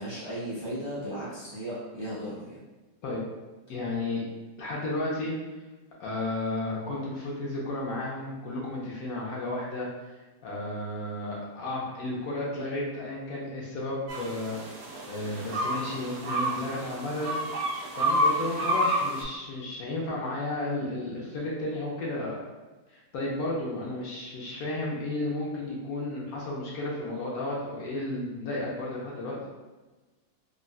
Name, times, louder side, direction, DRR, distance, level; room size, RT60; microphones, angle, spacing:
voice 1, 0.0-2.6, right 1 dB, 40° right, -10 dB, 0.4 m, -36 dB
voice 2, 3.7-4.2 4.6-5.4 6.0-14.6 15.1-17.6 18.0-22.4 22.9-29.4, left 2 dB, 70° left, -4 dB, 1.0 m, -33 dB
sound 1, 14.1-19.2, equal, 70° right, 1.1 m, -29 dB
3.7 x 2.1 x 2.3 m, 1.2 s
omnidirectional pair, 1.8 m